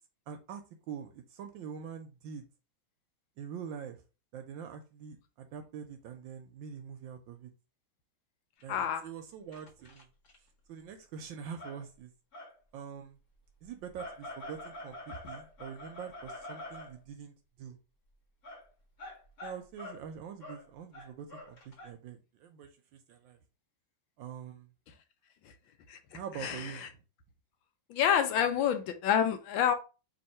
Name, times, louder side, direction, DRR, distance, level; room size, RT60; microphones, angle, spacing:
voice 1, 0.3-2.5 3.4-4.0 4.3-7.5 8.6-10.1 10.7-12.1 12.7-13.2 13.6-17.8 19.4-23.4 24.2-24.7 26.1-27.0, right 7 dB, 75° right, 1.2 m, -44 dB
sound 1, 8.6-8.7 9.5-10.4 11.6-11.8 12.3-12.5 14.0-17.0 18.4-18.7 19.0-20.0 20.4-20.7 20.9-21.9, left 1 dB, 45° left, 1.6 m, -45 dB
voice 2, 8.7-9.0 25.9-26.9 27.9-29.7, left 9 dB, 75° left, 1.3 m, -28 dB
3.6 x 2.8 x 4.2 m
omnidirectional pair, 2.3 m